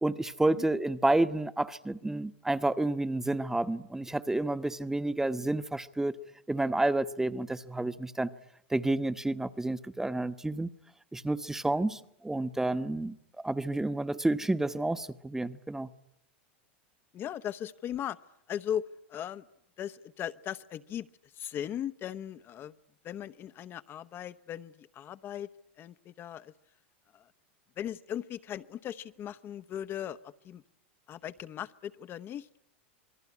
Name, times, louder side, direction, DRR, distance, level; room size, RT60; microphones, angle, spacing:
voice 1, 0.0-6.2 6.5-8.3 8.7-10.7 11.1-15.9, right 2 dB, 5° right, 1.1 m, -30 dB
voice 2, 17.1-18.2 18.5-19.4 19.8-22.7 23.0-25.5 25.8-26.5 27.1-27.3 27.8-30.6 31.1-32.6, left 10 dB, 35° left, 1.0 m, -38 dB
27.0 x 21.0 x 9.8 m
hypercardioid pair, 95°, 6 cm